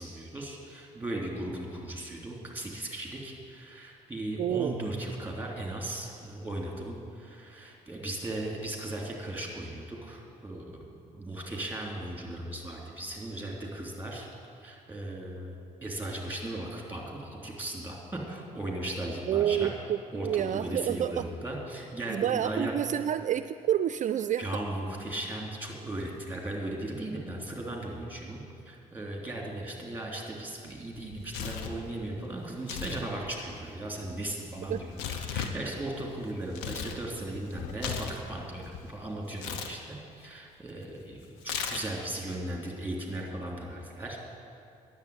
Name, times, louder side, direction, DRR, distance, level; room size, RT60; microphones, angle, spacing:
voice 1, 0.0-14.3 14.6-15.6 15.8-19.7 20.1-22.7 24.4-44.2, right 1 dB, 10° right, -1 dB, 3.5 m, -37 dB
voice 2, 4.4-4.7 19.3-21.3 22.1-24.6 34.7-34.8, right 10 dB, 45° right, 12 dB, 0.4 m, -29 dB
Tearing, 30.9-31.8 32.6-33.0 33.3-37.0 37.3-38.8 39.4-39.7 41.4-42.1, left 7 dB, 75° left, 1.0 m, -37 dB
10.5 x 8.2 x 9.6 m, 2.5 s
hypercardioid pair, 55°, 18 cm